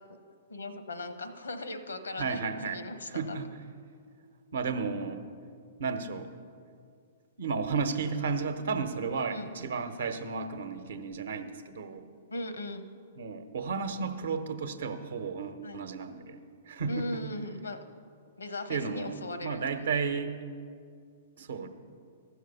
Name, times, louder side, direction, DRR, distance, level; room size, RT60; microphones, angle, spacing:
voice 1, 0.5-3.5 9.2-9.5 12.3-12.9 15.6-15.8 16.9-17.8 18.4-19.8, left 2 dB, 85° left, 9 dB, 0.9 m, -38 dB
voice 2, 2.2-2.8 3.1-3.5 4.5-5.2 5.8-6.3 7.4-12.1 13.2-17.2 18.7-20.4 21.4-21.7, right 5 dB, 70° right, 8 dB, 0.9 m, -33 dB
15.0 x 6.4 x 5.5 m, 2.2 s
hypercardioid pair, 115°, 0 cm